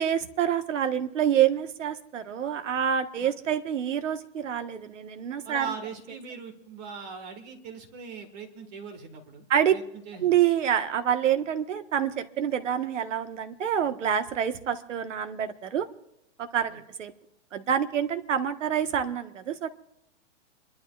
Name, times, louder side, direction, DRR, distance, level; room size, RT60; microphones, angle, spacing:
voice 1, 0.0-5.7 9.5-9.7 10.2-15.9 16.4-17.1 17.5-19.7, right 9 dB, 75° right, 8 dB, 1.4 m, -27 dB
voice 2, 5.4-9.4 9.7-10.3 16.7-16.8, right 6 dB, 35° right, 5 dB, 1.6 m, -40 dB
29.0 x 12.0 x 2.4 m, 0.85 s
hypercardioid pair, 165°, 37 cm